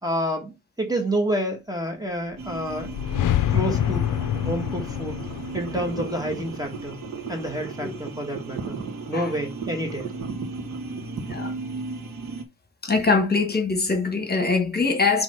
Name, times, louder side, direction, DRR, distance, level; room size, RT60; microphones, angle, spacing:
voice 1, 0.0-3.0 3.5-4.1 4.3-5.2 5.5-7.0 7.3-8.8 9.1-10.1, right 1 dB, 10° right, 1.3 m, -29 dB
sound 1, 2.4-7.6, left 11 dB, 70° left, 0.5 m, -27 dB
sound 2, 2.4-12.4, right 3 dB, 90° right, 1.7 m, -37 dB
sound 3, 5.2-11.3, right 7 dB, 65° right, 1.5 m, -37 dB
voice 2, 12.8-15.2, left 4 dB, 30° left, 1.4 m, -23 dB
5.8 x 3.3 x 5.5 m
wide cardioid pair, 160°, 33 cm